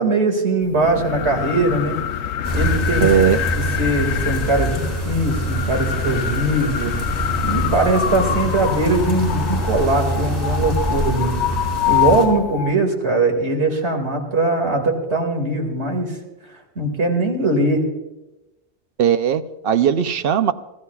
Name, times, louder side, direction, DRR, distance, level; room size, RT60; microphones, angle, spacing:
voice 1, 0.0-2.0 2.5-3.0 3.5-6.9 7.4-11.4 11.9-16.2 16.8-17.8, right 2 dB, 80° right, 3 dB, 2.5 m, -21 dB
sound 1, 0.6-12.8, left 10 dB, 80° left, 0.9 m, -25 dB
sound 2, 2.4-12.3, right 1 dB, 35° right, 4.8 m, -25 dB
voice 2, 3.0-3.4 19.0-20.5, right 8 dB, 60° right, 12 dB, 0.8 m, -18 dB
27.0 x 15.0 x 2.4 m, 1.0 s
omnidirectional pair, 1.1 m